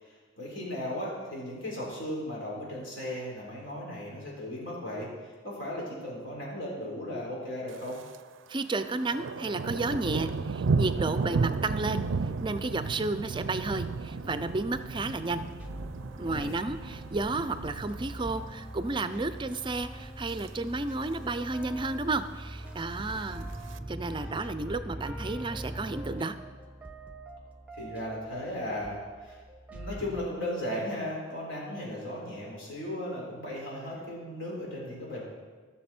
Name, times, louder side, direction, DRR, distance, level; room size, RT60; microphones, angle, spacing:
voice 1, 0.0-8.0 16.2-16.6 27.8-29.4 29.7-35.2, left 1 dB, 70° left, -4 dB, 3.9 m, -36 dB
Thunder, 7.7-8.2 8.5-18.9 19.2-19.6 20.0-20.5 20.8-20.9 21.0-21.1 21.5-22.1 22.8-23.8, right 4 dB, 85° right, 0.4 m, -34 dB
voice 2, 8.5-12.0 12.4-15.4 16.2-23.5 23.9-26.3, right 3 dB, 25° right, 12 dB, 0.5 m, -32 dB
sound 1, 12.3-26.2, right 1 dB, 10° left, 3.0 m, -45 dB
sound 2, 14.0-30.3, right 1 dB, 5° right, 0.9 m, -45 dB
16.0 x 6.8 x 4.4 m, 1.4 s
head